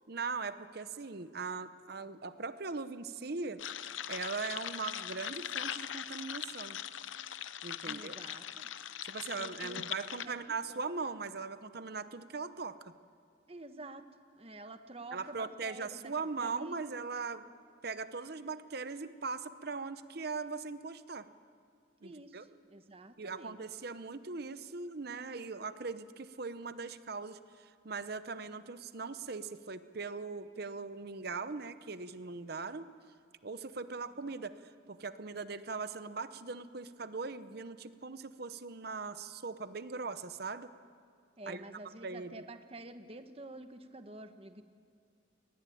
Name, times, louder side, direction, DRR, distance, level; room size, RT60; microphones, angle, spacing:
voice 1, 0.1-3.6 4.1-6.8 7.6-8.2 9.0-12.9 15.1-17.4 17.8-21.3 22.0-22.5 23.2-32.9 33.4-40.7 41.5-41.6 42.0-42.4, right 4 dB, 55° right, 12 dB, 0.8 m, -40 dB
sound 1, 3.6-10.3, left 10 dB, 80° left, 0.7 m, -41 dB
voice 2, 7.8-8.7 9.3-9.8 10.2-10.4 10.7-10.8 13.5-14.1 14.3-16.8 22.0-23.6 41.4-44.6, right 2 dB, 30° right, 9 dB, 1.2 m, -49 dB
23.0 x 20.0 x 9.3 m, 2.4 s
head